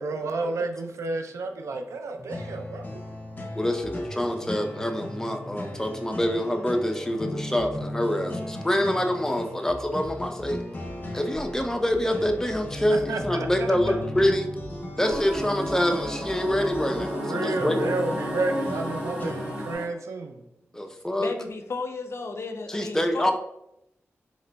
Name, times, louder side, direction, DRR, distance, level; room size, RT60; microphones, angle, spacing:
voice 1, 0.0-3.0 12.9-14.0 17.1-20.4, right 3 dB, 85° right, 5 dB, 0.4 m, -31 dB
sound 1, 2.2-3.1 3.4-6.9 7.1-17.2, right 1 dB, 35° right, 0.7 m, -45 dB
sound 2, 2.3-19.7, left 1 dB, 35° left, 0.9 m, -37 dB
voice 2, 3.6-10.6 11.1-14.5 15.0-17.8 20.7-21.3 22.7-23.3, left 1 dB, 10° left, 4 dB, 0.5 m, -26 dB
sound 3, 15.0-19.9, equal, 15° right, 1.0 m, -32 dB
voice 3, 21.2-23.3, left 3 dB, 60° left, 5 dB, 0.5 m, -34 dB
3.8 x 3.0 x 2.2 m, 0.83 s
cardioid pair, 45°, 5 cm